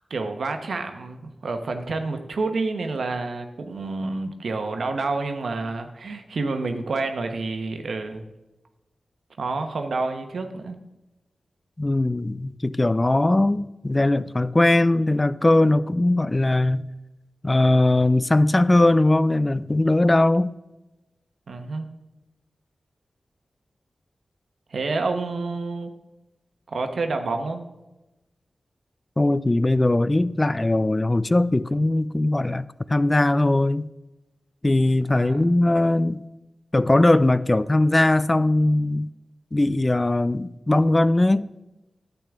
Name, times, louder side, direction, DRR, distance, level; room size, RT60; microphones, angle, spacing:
voice 1, 0.1-8.2 9.4-10.8 21.5-21.8 24.7-25.9 26.7-27.6 35.1-35.6, right 3 dB, 75° right, 1.0 m, -28 dB
voice 2, 11.8-16.8 17.4-20.5 29.2-33.9 34.6-36.2 36.7-39.1 39.5-41.5, left 2 dB, 30° left, 0.4 m, -20 dB
10.5 x 8.3 x 3.6 m
cardioid pair, 45°, 0 cm